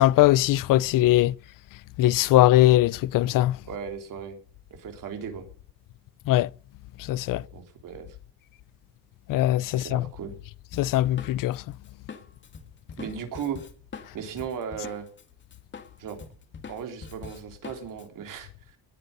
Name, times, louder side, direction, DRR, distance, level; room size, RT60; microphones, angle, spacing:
voice 1, 0.0-1.3 2.0-3.6 6.3-6.5 7.0-7.4 9.3-10.1 10.8-11.6, left 15 dB, 60° left, 0.6 m, -20 dB
voice 2, 3.7-4.4 4.7-5.5 7.3-8.2 9.7-10.4 13.0-13.6 14.1-15.1 16.0-16.2 16.7-18.8, right 7 dB, 55° right, 3.9 m, -36 dB
Drum kit, 10.7-15.2 15.5-18.1, left 5 dB, 30° left, 2.4 m, -43 dB
20.0 x 9.7 x 5.4 m
cardioid pair, 165°, 38 cm